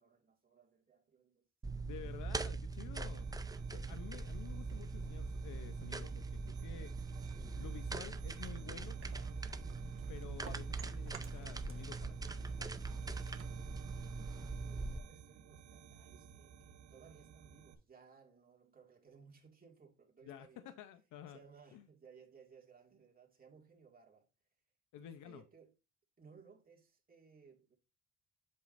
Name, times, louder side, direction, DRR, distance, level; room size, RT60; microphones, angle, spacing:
voice 1, 0.0-1.5 14.0-20.7 21.3-24.3 25.0-25.7 26.2-27.8, right 6 dB, 30° right, 2.1 m, -62 dB
sound 1, 1.6-15.0, right 3 dB, 15° right, 0.4 m, -42 dB
voice 2, 1.8-3.3 3.7-6.9 7.5-9.0 10.1-12.9 20.2-21.4 21.7-21.8 24.9-25.4, left 10 dB, 85° left, 0.7 m, -51 dB
sound 2, 3.0-17.7, right 8 dB, 75° right, 0.9 m, -56 dB
sound 3, 9.0-11.9 12.2-14.6, right 6 dB, 45° right, 1.2 m, -56 dB
7.5 x 5.6 x 2.6 m
cardioid pair, 90°, 30 cm